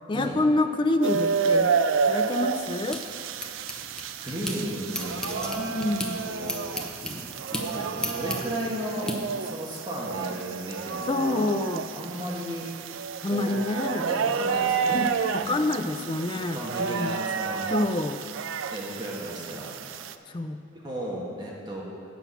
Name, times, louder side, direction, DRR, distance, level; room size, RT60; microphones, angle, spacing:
voice 1, 0.1-1.8 2.1-3.0 5.6-6.2 11.1-11.8 13.2-14.0 14.9-15.1 15.3-17.1 17.7-18.2 20.3-20.6, left 2 dB, 25° left, 8 dB, 0.4 m, -27 dB
sound 1, 1.0-20.1, right 6 dB, 75° right, 0.4 m, -30 dB
sound 2, 2.2-4.6 4.9-9.2, left 1 dB, 5° left, 0.7 m, -36 dB
voice 2, 4.2-6.7 7.7-9.1 9.4-11.5 11.9-12.7 13.3-13.6 14.0-15.0 15.3-15.7 16.5-17.8 18.7-19.7 20.7-21.8, equal, 20° right, -4 dB, 1.4 m, -35 dB
9.0 x 5.9 x 7.1 m, 2.5 s
head